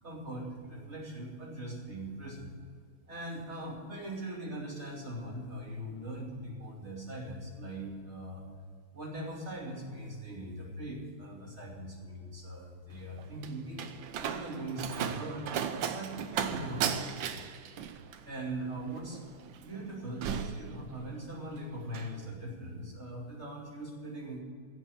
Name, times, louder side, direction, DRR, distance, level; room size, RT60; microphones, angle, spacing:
voice 1, 0.0-2.5 3.1-8.4 8.9-17.4 18.2-19.2 19.6-24.4, right 1 dB, 30° right, -3 dB, 3.1 m, -41 dB
Slam, 12.9-21.4 21.7-22.2, right 8 dB, 70° right, 1.5 m, -36 dB
16.0 x 6.1 x 9.1 m, 2.1 s
omnidirectional pair, 2.3 m